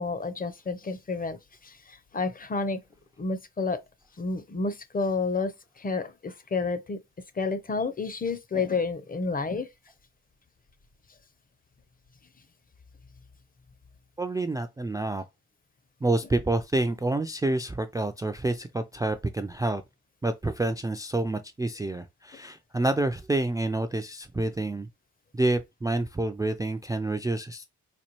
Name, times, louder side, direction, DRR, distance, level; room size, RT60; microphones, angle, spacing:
voice 1, 0.0-2.8 3.2-3.8 4.2-7.0 7.3-9.7, left 4 dB, 30° left, 0.6 m, -30 dB
voice 2, 14.2-15.2 16.0-19.8 20.2-24.9 25.3-27.6, right 2 dB, 10° right, 0.3 m, -28 dB
4.2 x 2.2 x 3.0 m
cardioid pair, 70°, 31 cm